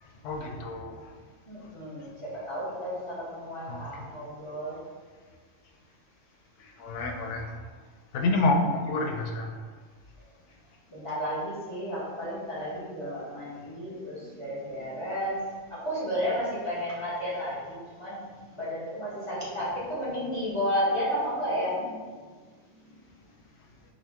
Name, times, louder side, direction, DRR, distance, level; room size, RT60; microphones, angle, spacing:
voice 1, 0.0-1.1 2.0-2.1 3.6-4.1 6.6-7.6 8.1-9.7, left 2 dB, 85° left, 3 dB, 0.9 m, -29 dB
voice 2, 1.5-4.8 10.9-15.4 15.7-18.3 18.6-22.0 22.8-22.9, equal, 30° left, -9 dB, 1.0 m, -32 dB
4.9 x 2.1 x 3.4 m, 1.5 s
omnidirectional pair, 1.2 m